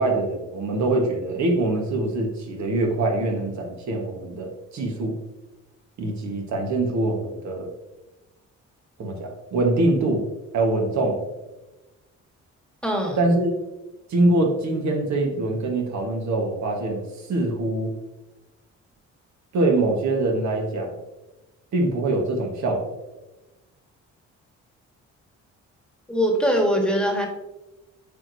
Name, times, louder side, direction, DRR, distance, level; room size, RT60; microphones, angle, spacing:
voice 1, 0.0-5.2 6.0-7.7 9.0-10.2 10.5-11.2 13.2-13.5 14.1-17.0 17.3-17.9 19.5-20.9 21.7-22.8, right 2 dB, 65° right, 2 dB, 1.3 m, -23 dB
voice 2, 12.8-13.2 26.1-27.3, equal, 5° left, 1 dB, 1.4 m, -22 dB
8.4 x 4.7 x 2.7 m, 1.1 s
cardioid pair, 90°, 30 cm